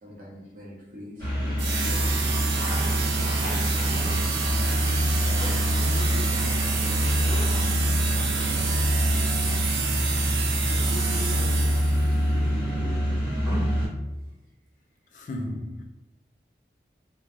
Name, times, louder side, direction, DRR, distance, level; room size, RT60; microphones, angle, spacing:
voice 1, 0.0-2.4 2.7-4.6 5.8-9.9 10.7-13.9, left 1 dB, 50° right, 0.8 m, -42 dB
sound 1, 1.2-13.9, equal, 10° left, 1.4 m, -25 dB
sound 2, 1.6-12.1, right 5 dB, 90° right, 0.4 m, -30 dB
voice 2, 15.1-15.8, left 1 dB, 45° left, 0.3 m, -34 dB
3.2 x 2.2 x 2.4 m
head